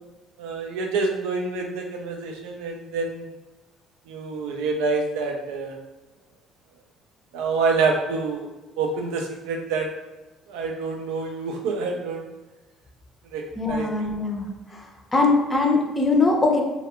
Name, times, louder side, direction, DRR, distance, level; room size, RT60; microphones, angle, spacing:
voice 1, 0.4-3.3 4.1-5.8 7.3-8.5 8.8-9.9 10.5-12.2 13.3-13.9, right 4 dB, 85° right, 2 dB, 0.3 m, -27 dB
voice 2, 13.6-14.5 15.1-16.6, left 3 dB, 20° left, 1 dB, 0.5 m, -21 dB
2.3 x 2.1 x 2.8 m, 1.1 s
supercardioid pair, 85°, 0 cm